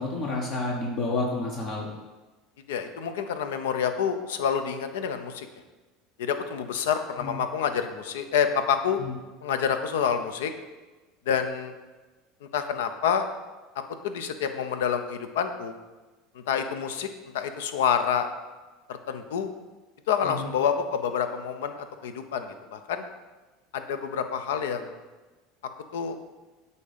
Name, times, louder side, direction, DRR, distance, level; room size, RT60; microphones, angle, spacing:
voice 1, 0.0-1.9 7.2-7.4 9.0-9.1 20.2-20.5, left 2 dB, 55° left, -2 dB, 1.0 m, -30 dB
voice 2, 2.7-5.5 6.2-9.0 9.4-10.5 11.3-11.7 12.5-13.3 14.0-15.7 16.3-17.1 17.3-18.3 18.9-19.5 20.1-23.0 23.7-25.0 25.9-26.2, left 7 dB, 85° left, 8 dB, 0.6 m, -28 dB
8.2 x 2.8 x 5.0 m, 1.2 s
supercardioid pair, 100°, 0 cm